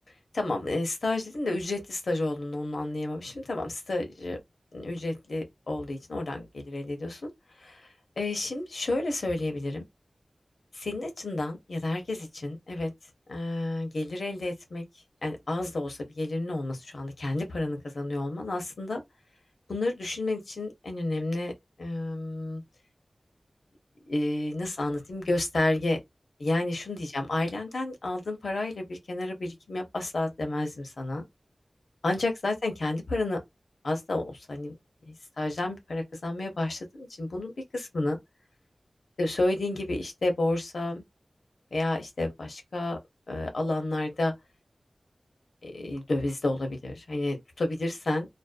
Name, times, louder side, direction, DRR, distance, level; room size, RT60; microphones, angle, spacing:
voice 1, 0.3-4.4 4.7-7.3 7.6-7.8 8.2-9.8 10.7-12.9 13.3-14.8 15.2-19.0 19.7-21.5 21.8-22.6 24.0-26.0 26.4-31.2 32.0-33.4 33.8-34.7 35.1-38.2 39.2-41.0 41.7-43.0 43.3-44.3 45.6-48.3, left 2 dB, 80° left, 0.7 m, -30 dB
2.4 x 2.1 x 2.4 m
wide cardioid pair, 50°, 0 cm